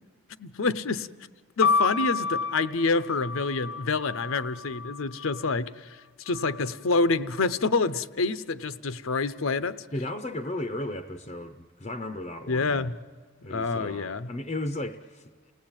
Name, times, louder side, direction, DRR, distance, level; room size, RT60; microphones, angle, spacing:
voice 1, 0.4-1.1 1.6-6.0 6.3-9.8 12.5-12.9 13.5-14.3, left 3 dB, 70° left, 0.7 m, -27 dB
sound 1, 1.6-5.4 6.3-7.0, left 5 dB, 85° left, 1.1 m, -30 dB
voice 2, 9.9-12.9 13.4-15.3, left 1 dB, 30° left, 0.6 m, -35 dB
29.5 x 17.5 x 8.9 m
head